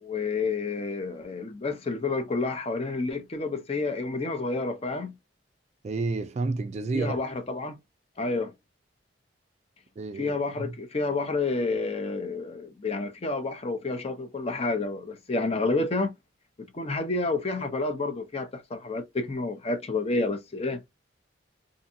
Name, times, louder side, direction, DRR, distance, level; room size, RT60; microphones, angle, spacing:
voice 1, 0.0-5.1 6.9-7.8 8.2-8.5 10.2-16.2 16.7-20.8, left 3 dB, 30° left, 0.5 m, -29 dB
voice 2, 5.8-7.2 10.0-10.8, right 3 dB, 35° right, 0.3 m, -30 dB
2.6 x 2.6 x 2.4 m
head